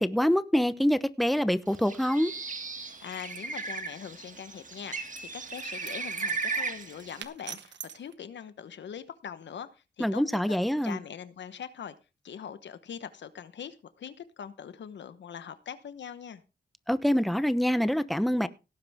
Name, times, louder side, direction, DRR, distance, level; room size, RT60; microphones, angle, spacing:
voice 1, 0.0-2.3 10.0-11.0 16.9-18.5, equal, ahead, 0.9 m, -25 dB
Bird, 1.7-7.2, right 4 dB, 45° right, 2.0 m, -36 dB
voice 2, 2.8-10.6 10.8-11.9 12.2-16.4, left 8 dB, 90° left, 1.1 m, -42 dB
sound 1, 3.1-3.4 5.0-8.1, right 8 dB, 85° right, 1.0 m, -46 dB
17.5 x 9.6 x 3.5 m
cardioid pair, 70°, 18 cm